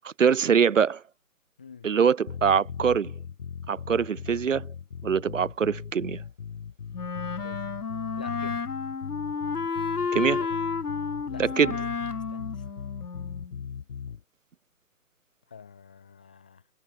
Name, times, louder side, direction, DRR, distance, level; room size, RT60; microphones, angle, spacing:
voice 1, 0.0-1.0 1.8-3.1 3.7-4.7 5.0-6.2 10.1-10.4 11.4-11.8, right 7 dB, 55° right, 0.7 m, -23 dB
voice 2, 1.6-1.9 7.4-7.7 8.2-8.7 10.4-10.5 11.3-11.8 12.3-12.6 15.5-16.6, left 6 dB, 5° left, 0.9 m, -46 dB
sound 1, 2.3-14.2, left 7 dB, 35° left, 1.6 m, -39 dB
Wind instrument woodwind instrument, 6.9-13.5, left 5 dB, 75° left, 2.8 m, -31 dB
hypercardioid pair, 165°, 46 cm